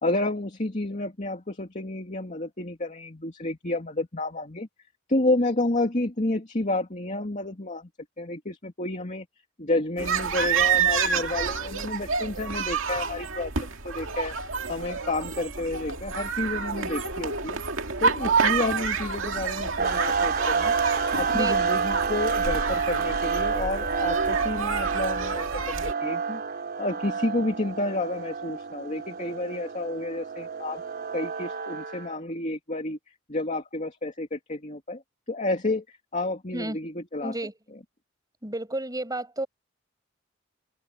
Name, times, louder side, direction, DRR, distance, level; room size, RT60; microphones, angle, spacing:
voice 1, 0.0-4.7 5.1-7.9 8.2-9.3 9.6-14.3 14.7-17.6 18.0-20.7 21.2-26.4 26.8-30.8 31.1-33.0 33.3-35.0 35.3-37.4, left 2 dB, 35° left, 2.6 m, -30 dB
sound 1, 10.0-25.9, right 5 dB, 75° right, 2.3 m, -28 dB
sound 2, 19.8-32.1, right 5 dB, 50° right, 3.8 m, -29 dB
voice 2, 37.2-37.5 38.4-39.5, right 1 dB, 20° right, 7.4 m, -31 dB
head